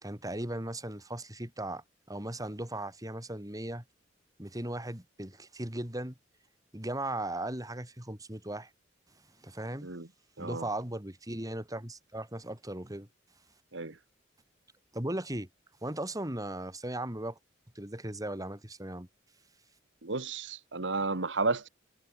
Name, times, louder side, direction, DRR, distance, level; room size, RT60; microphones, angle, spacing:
voice 1, 0.0-3.8 4.4-6.1 6.7-8.7 9.4-9.9 10.4-13.1 14.9-15.5 15.8-17.4 17.7-19.1, right 1 dB, 20° right, 4.6 m, -37 dB
voice 2, 10.4-10.7 13.7-14.0 20.0-21.7, right 3 dB, 70° right, 1.7 m, -32 dB
head